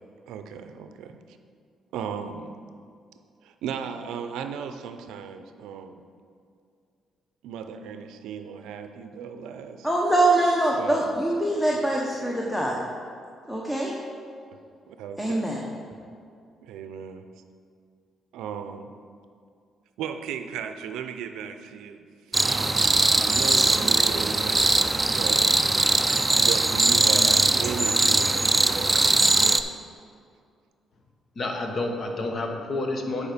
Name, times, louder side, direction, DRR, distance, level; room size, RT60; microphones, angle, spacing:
voice 1, 0.3-1.2 1.9-2.6 3.4-6.0 7.4-9.9 10.8-11.2 14.9-15.5 16.6-17.3 18.3-18.9 20.0-24.7 25.1-25.6 26.4-29.6, right 7 dB, 90° right, 8 dB, 0.5 m, -36 dB
voice 2, 9.8-12.8 13.5-13.9 15.2-15.6, right 1 dB, 5° left, -2 dB, 1.0 m, -23 dB
sound 1, 22.3-29.6, right 2 dB, 20° right, 0.4 m, -21 dB
voice 3, 31.3-33.3, left 2 dB, 45° left, 3 dB, 1.1 m, -29 dB
9.4 x 4.8 x 5.0 m, 2.4 s
cardioid pair, 90°, 0 cm